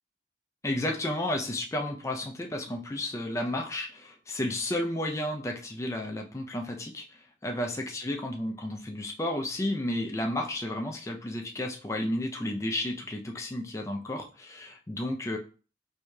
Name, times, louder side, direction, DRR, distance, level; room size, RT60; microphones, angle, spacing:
voice 1, 0.6-15.4, left 1 dB, 15° left, 3 dB, 0.4 m, -32 dB
4.7 x 2.7 x 2.2 m, 0.37 s
head